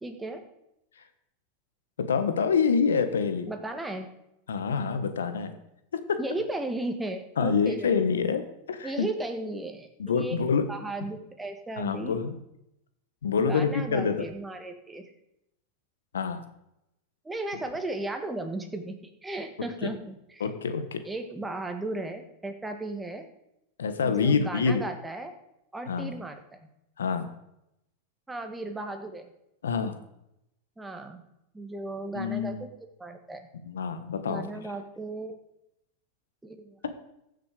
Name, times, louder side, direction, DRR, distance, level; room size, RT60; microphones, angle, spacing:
voice 1, 0.0-0.5 3.5-4.1 6.2-7.9 8.8-10.4 10.7-12.2 13.3-15.1 17.2-19.0 19.2-20.5 21.1-23.3 24.0-25.3 25.7-26.7 28.3-29.3 30.8-31.2 31.5-33.5 34.2-35.4 36.4-36.8, right 2 dB, 10° right, 5 dB, 1.8 m, -35 dB
voice 2, 2.0-3.5 4.5-5.5 5.9-6.2 7.4-9.1 10.0-10.6 11.8-12.3 13.2-14.3 16.1-16.4 20.4-21.0 23.8-24.8 25.9-26.1 27.0-27.3 29.6-30.0 32.1-32.6 33.6-34.4, left 5 dB, 90° left, 9 dB, 1.3 m, -26 dB
15.0 x 6.6 x 5.0 m, 0.83 s
hypercardioid pair, 105°, 0 cm